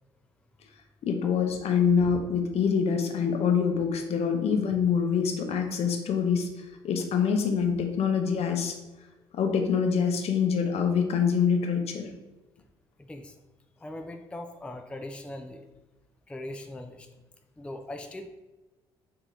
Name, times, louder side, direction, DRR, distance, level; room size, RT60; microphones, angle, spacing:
voice 1, 1.0-8.8 9.3-12.1, left 6 dB, 55° left, 4 dB, 0.7 m, -25 dB
voice 2, 13.0-13.4 13.8-15.7 16.3-17.1 17.6-18.3, left 1 dB, 10° left, 6 dB, 0.4 m, -40 dB
2.9 x 2.8 x 3.7 m, 1.1 s
hypercardioid pair, 50°, 13 cm